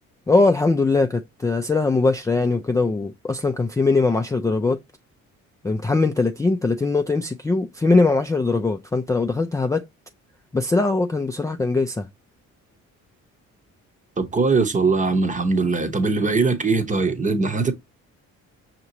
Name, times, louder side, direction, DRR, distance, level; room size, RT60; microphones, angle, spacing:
voice 1, 0.3-4.8 5.6-9.8 10.5-12.1, left 3 dB, 10° left, 0.3 m, -21 dB
voice 2, 14.2-17.7, right 4 dB, 25° right, 0.9 m, -21 dB
5.5 x 2.9 x 2.7 m
cardioid pair, 90°, 30 cm